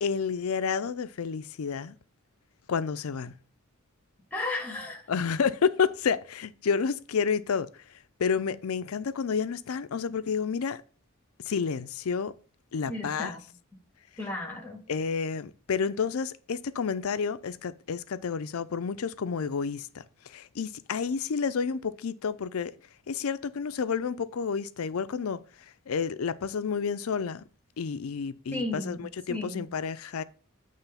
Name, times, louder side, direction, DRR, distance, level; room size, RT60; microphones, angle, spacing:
voice 1, 0.0-2.0 2.7-3.3 5.1-7.7 8.2-10.8 11.5-12.3 12.7-13.3 14.9-22.7 23.1-25.4 25.9-27.4 27.8-30.2, left 6 dB, 80° left, 0.5 m, -30 dB
voice 2, 4.3-5.0 12.9-13.4 14.2-14.8 28.5-29.7, left 2 dB, 10° left, 1.8 m, -34 dB
9.0 x 3.2 x 5.6 m
head